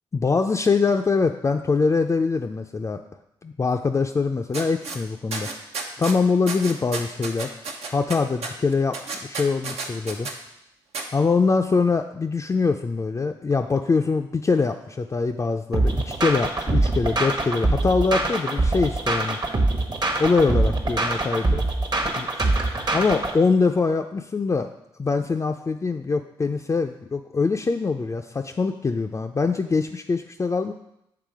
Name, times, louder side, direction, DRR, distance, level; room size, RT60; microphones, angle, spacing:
voice 1, 0.1-3.0 3.4-5.5 6.0-7.5 7.9-10.3 11.1-19.4 20.2-21.6 22.2-22.5 22.9-24.7 25.0-30.7, left 4 dB, 30° left, 4 dB, 0.4 m, -23 dB
sound 1, 4.5-5.0 5.3-6.2 6.5-10.3 10.9-11.0, right 4 dB, 75° right, 0.8 m, -31 dB
sound 2, 15.7-23.3, right 2 dB, 40° right, 1.0 m, -23 dB
6.7 x 3.5 x 4.7 m, 0.81 s
supercardioid pair, 50°, 11 cm